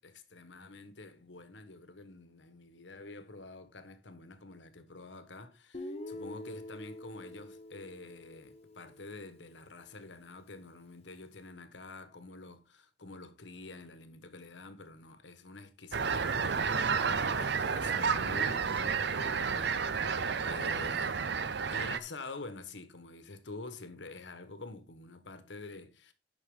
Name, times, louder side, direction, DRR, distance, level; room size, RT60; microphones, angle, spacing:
voice 1, 0.0-21.4 21.7-26.1, left 3 dB, 80° left, 1.3 m, -48 dB
Guitar, 5.7-9.7, left 1 dB, 35° left, 1.2 m, -46 dB
sound 1, 15.9-22.0, right 5 dB, 65° right, 0.7 m, -31 dB
10.5 x 6.0 x 3.7 m
head